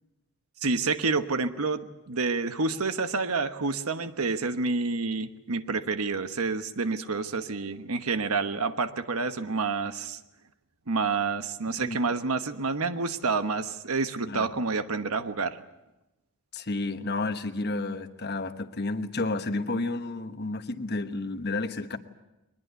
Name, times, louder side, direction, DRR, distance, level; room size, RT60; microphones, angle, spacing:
voice 1, 0.6-10.2 10.9-15.6, right 4 dB, 80° right, 10 dB, 1.2 m, -28 dB
voice 2, 16.5-22.0, left 2 dB, 45° left, 9 dB, 1.2 m, -31 dB
22.0 x 20.5 x 8.2 m, 0.97 s
head